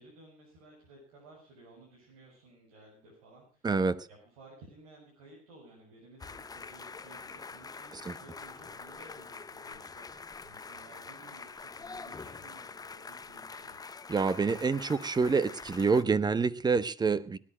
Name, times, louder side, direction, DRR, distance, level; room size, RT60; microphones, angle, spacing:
voice 1, 0.0-3.7 4.1-13.8, right 2 dB, 85° right, -3 dB, 6.6 m, -56 dB
voice 2, 3.6-4.1 8.1-8.2 14.1-17.4, right 4 dB, 25° right, 17 dB, 1.1 m, -27 dB
sound 1, 6.2-16.0, left 4 dB, 20° left, 1.1 m, -45 dB
18.5 x 10.5 x 6.2 m, 0.38 s
supercardioid pair, 85°, 18 cm